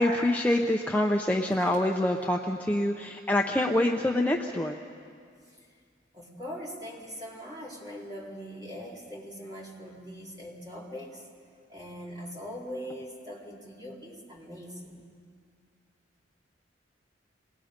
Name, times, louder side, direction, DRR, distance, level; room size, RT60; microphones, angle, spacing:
voice 1, 0.0-4.8, left 1 dB, 10° left, 1 dB, 0.6 m, -26 dB
voice 2, 6.1-11.3 11.7-15.1, equal, 20° right, -4 dB, 3.6 m, -41 dB
27.5 x 19.5 x 5.2 m, 2.2 s
head